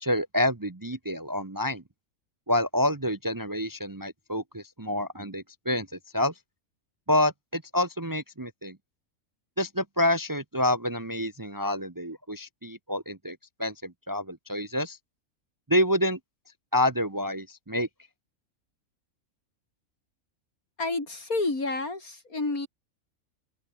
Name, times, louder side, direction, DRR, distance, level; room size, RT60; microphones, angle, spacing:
voice 1, 0.0-1.8 2.5-5.9 6.1-6.3 7.1-8.8 9.6-15.0 15.7-16.2 16.7-17.9, left 1 dB, 15° right, 0.8 m, -28 dB
voice 2, 20.8-22.7, left 2 dB, 85° left, 5.2 m, -29 dB
open air
omnidirectional pair, 1.5 m